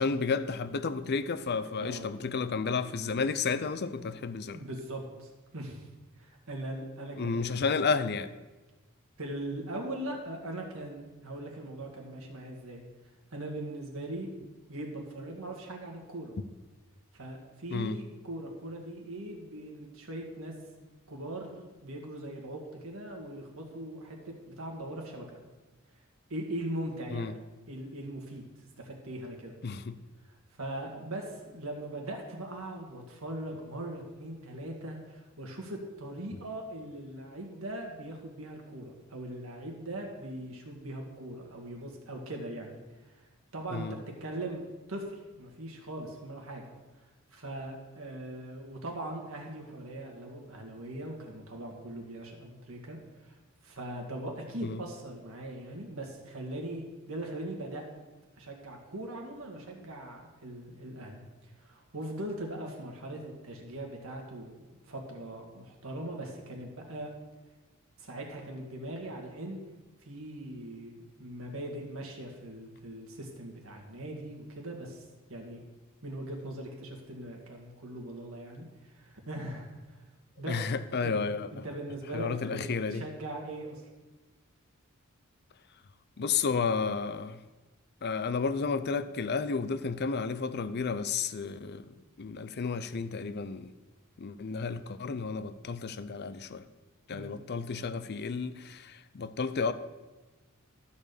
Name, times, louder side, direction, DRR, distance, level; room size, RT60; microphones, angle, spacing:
voice 1, 0.0-4.6 7.2-8.3 17.7-18.0 27.1-27.3 29.6-30.0 43.7-44.0 54.6-54.8 80.5-81.6 82.1-83.0 86.2-87.4 88.0-93.7 94.2-96.6 97.1-99.7, left 5 dB, 50° left, 0.5 m, -32 dB
voice 2, 4.5-5.9 6.2-7.7 9.2-12.8 13.3-14.3 14.7-16.3 17.1-20.5 20.8-25.4 26.3-27.3 27.7-28.5 28.8-29.6 30.2-42.7 43.0-44.6 44.9-46.6 47.0-53.4 53.6-57.9 58.4-67.1 68.0-69.6 70.1-75.0 75.3-75.6 76.0-80.0 80.4-80.6 81.0-81.2 81.5-83.8 97.1-97.4, right 1 dB, 70° right, 1.9 m, -40 dB
12.5 x 4.3 x 6.8 m
head